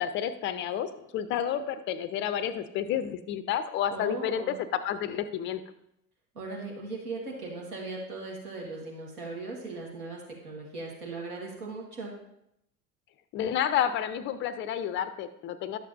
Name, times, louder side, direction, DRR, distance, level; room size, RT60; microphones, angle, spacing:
voice 1, 0.0-5.6 13.3-15.8, left 9 dB, 30° left, 12 dB, 0.4 m, -30 dB
voice 2, 3.9-4.5 6.3-12.2, right 3 dB, 75° right, -2 dB, 1.7 m, -38 dB
12.0 x 7.3 x 2.6 m, 0.80 s
figure-of-eight pair, 70°, 45 cm